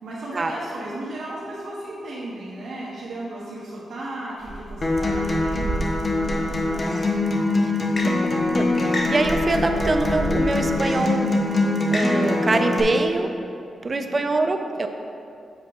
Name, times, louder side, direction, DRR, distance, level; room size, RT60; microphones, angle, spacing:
voice 1, 0.0-7.0 13.8-14.3, right 1 dB, 70° right, -9 dB, 1.2 m, -35 dB
sound 1, 4.4-7.0 7.9-8.0 8.3-10.9, right 2 dB, 10° right, 1.2 m, -32 dB
Acoustic guitar, 4.8-12.8, left 2 dB, 35° left, 0.8 m, -23 dB
voice 2, 8.5-11.3 11.9-13.3 13.8-14.9, right 2 dB, 30° right, 6 dB, 0.5 m, -24 dB
8.0 x 6.1 x 3.0 m, 2.5 s
wide cardioid pair, 120°, 0 cm